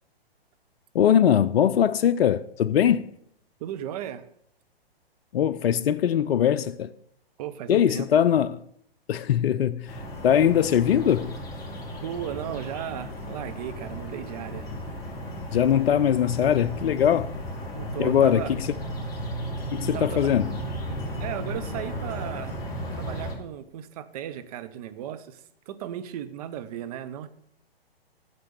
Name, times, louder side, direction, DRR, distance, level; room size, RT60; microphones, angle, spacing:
voice 1, 0.9-3.0 5.3-6.9 7.7-8.6 9.1-11.4 15.5-17.3 18.0-18.7 19.7-20.5, left 9 dB, 70° left, 0.5 m, -21 dB
voice 2, 3.6-4.3 7.4-8.1 12.0-14.7 17.7-18.5 19.9-20.6 21.2-22.5 22.9-27.3, right 11 dB, 40° right, 0.8 m, -36 dB
sound 1, 9.9-23.3, equal, 10° left, 2.7 m, -35 dB
9.6 x 6.7 x 6.6 m
hypercardioid pair, 130°, 31 cm